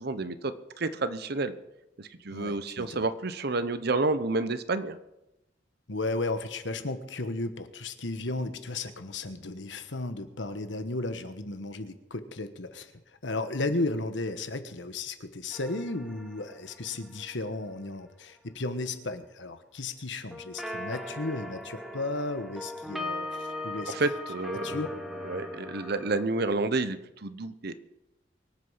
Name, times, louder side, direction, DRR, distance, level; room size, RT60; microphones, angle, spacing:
voice 1, 0.0-1.5 2.0-5.0 23.9-24.8 25.2-27.7, right 3 dB, 60° right, 12 dB, 0.9 m, -30 dB
voice 2, 2.3-3.0 5.9-23.9 24.5-24.9, left 2 dB, 75° left, 9 dB, 1.3 m, -34 dB
sound 1, 15.5-17.6 20.3-26.2, left 1 dB, ahead, 1.5 m, -39 dB
24.0 x 8.3 x 5.7 m, 0.93 s
head